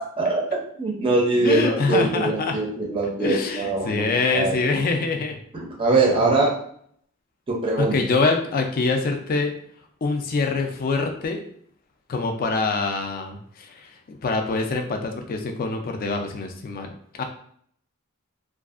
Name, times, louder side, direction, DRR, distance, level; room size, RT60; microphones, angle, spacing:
voice 1, 0.8-4.6 5.5-6.6 7.5-8.0, right 2 dB, 25° right, -1 dB, 0.5 m, -22 dB
voice 2, 1.4-2.5 3.2-5.4 7.8-9.5 10.0-11.4 12.1-17.2, left 3 dB, 40° left, 4 dB, 0.4 m, -25 dB
2.6 x 2.3 x 2.4 m, 0.62 s
head